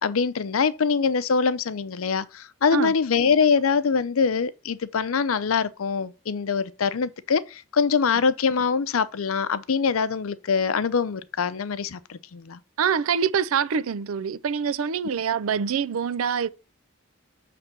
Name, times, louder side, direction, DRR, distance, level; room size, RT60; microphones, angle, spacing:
voice 1, 0.0-12.6, left 5 dB, 85° left, 0.6 m, -24 dB
voice 2, 12.8-16.5, right 7 dB, 85° right, 0.4 m, -25 dB
6.6 x 3.3 x 5.9 m
head